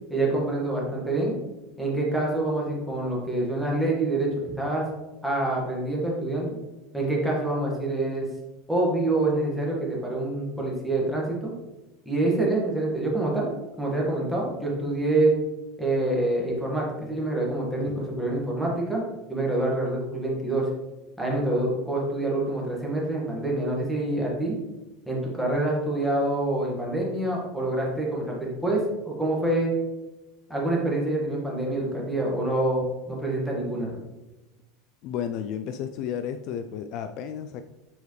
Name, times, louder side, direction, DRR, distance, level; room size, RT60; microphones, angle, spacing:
voice 1, 0.1-1.3 1.8-4.8 5.2-6.5 6.9-8.3 8.7-11.5 12.0-13.5 13.8-15.3 15.8-19.0 19.3-20.7 21.2-24.5 25.1-29.7 30.5-33.9, right 2 dB, ahead, -3 dB, 1.7 m, -26 dB
voice 2, 35.0-37.6, left 8 dB, 50° left, 8 dB, 0.3 m, -33 dB
7.1 x 4.8 x 3.2 m, 1.0 s
supercardioid pair, 140°, 0 cm